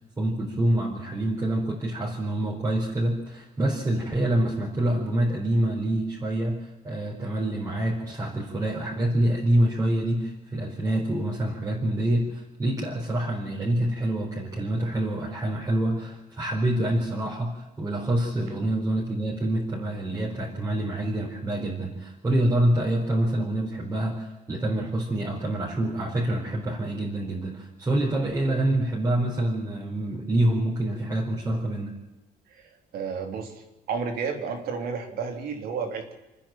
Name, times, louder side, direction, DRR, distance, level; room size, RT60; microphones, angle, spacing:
voice 1, 0.2-31.9, right 1 dB, 20° right, -4 dB, 4.4 m, -26 dB
voice 2, 32.5-36.1, right 5 dB, 85° right, 4 dB, 3.5 m, -32 dB
28.5 x 10.0 x 9.0 m, 1.0 s
cardioid pair, 155°, 15 cm